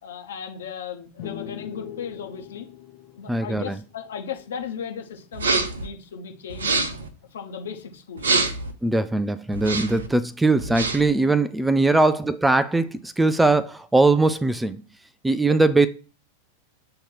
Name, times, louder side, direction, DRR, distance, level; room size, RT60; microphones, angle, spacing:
voice 1, 0.0-2.7 3.2-6.8 7.3-8.4 15.5-15.6, left 7 dB, 65° left, 1.1 m, -36 dB
sound 1, 1.2-4.8, left 11 dB, 40° left, 0.9 m, -41 dB
voice 2, 3.3-3.8 8.8-14.8 15.2-15.9, right 2 dB, 5° right, 0.3 m, -20 dB
sound 2, 5.3-5.9 6.5-7.1 8.2-8.7 9.5-10.1 10.6-11.1, right 3 dB, 70° right, 0.7 m, -25 dB
7.6 x 2.9 x 4.5 m
figure-of-eight pair, 90°, 0 cm